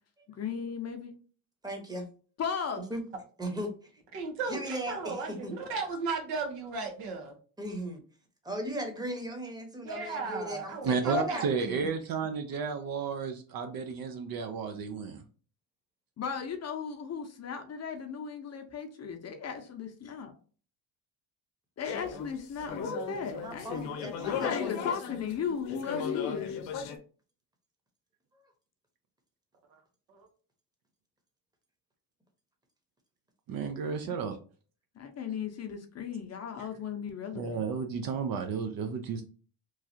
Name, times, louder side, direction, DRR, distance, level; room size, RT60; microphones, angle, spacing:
voice 1, 0.3-1.1 2.4-2.8 16.2-20.3 21.8-23.9 24.3-26.6 33.8-34.2 35.0-37.6, left 6 dB, 35° left, 5 dB, 0.6 m, -36 dB
voice 2, 1.6-2.1 2.9-3.0 3.4-4.0 4.5-5.5 7.6-8.0 8.4-11.4 23.3-24.8 25.1-25.2, right 1 dB, 10° right, 3 dB, 0.9 m, -38 dB
voice 3, 4.1-7.3 9.8-11.8 30.1-30.2, right 3 dB, 80° right, 2 dB, 1.1 m, -35 dB
voice 4, 10.8-15.2 33.5-34.3 37.3-39.2, right 5 dB, 55° right, 6 dB, 0.5 m, -32 dB
sound 1, 21.8-27.0, left 7 dB, 85° left, 0.7 m, -37 dB
3.1 x 2.3 x 2.7 m, 0.40 s
cardioid pair, 95°, 43 cm